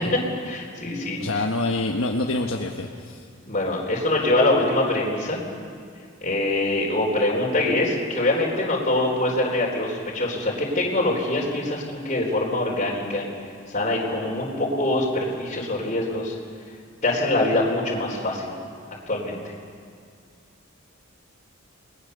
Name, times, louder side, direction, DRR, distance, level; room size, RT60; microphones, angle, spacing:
voice 1, 0.4-1.2 3.5-5.4 6.2-13.2 13.7-16.3 17.0-18.5 19.1-19.4, left 2 dB, 35° left, -3 dB, 4.1 m, -24 dB
voice 2, 1.2-3.2, left 2 dB, 80° left, 1 dB, 1.4 m, -26 dB
29.5 x 20.5 x 6.9 m, 2.3 s
head